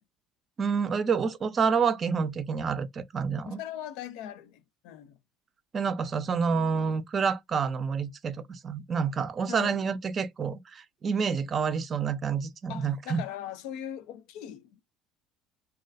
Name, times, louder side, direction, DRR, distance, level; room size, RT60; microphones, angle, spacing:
voice 1, 0.6-3.6 5.7-13.2, right 6 dB, 40° right, 0.4 m, -28 dB
voice 2, 3.5-5.2 9.5-9.8 12.7-14.8, left 10 dB, 65° left, 0.3 m, -39 dB
2.4 x 2.1 x 2.5 m
figure-of-eight pair, 60°, 0 cm